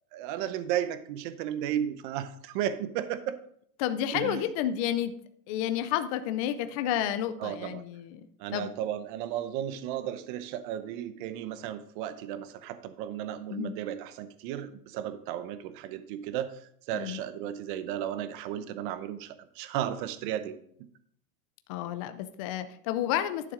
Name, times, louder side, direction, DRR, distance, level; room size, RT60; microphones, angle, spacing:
voice 1, 0.1-3.4 4.1-4.4 7.4-7.8 8.4-16.6 16.9-20.6, right 10 dB, 35° right, 13 dB, 0.7 m, -34 dB
voice 2, 3.8-5.1 5.5-8.3 8.5-8.7 13.5-13.8 16.9-17.2 21.7-23.5, left 11 dB, 25° left, 10 dB, 0.4 m, -31 dB
12.0 x 7.0 x 3.8 m, 0.66 s
supercardioid pair, 160°, 42 cm